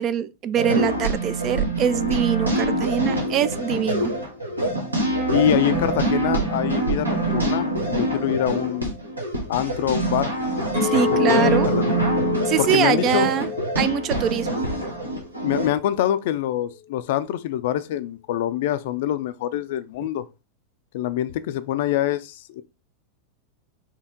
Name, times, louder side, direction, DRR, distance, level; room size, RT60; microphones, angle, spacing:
voice 1, 0.0-4.1 10.8-11.7 12.5-13.5 13.8-14.7, right 9 dB, 35° right, 0.3 m, -23 dB
sound 1, 0.6-15.7, right 2 dB, 80° right, 1.2 m, -25 dB
voice 2, 5.3-9.0 9.5-10.3 11.3-12.1 12.6-13.3 15.4-20.2 20.9-22.6, left 12 dB, 50° left, 0.4 m, -25 dB
Chink clink, 10.7-15.1 15.5-15.9, left 9 dB, 60° right, 1.5 m, -29 dB
4.4 x 2.8 x 3.6 m
figure-of-eight pair, 90°, 0 cm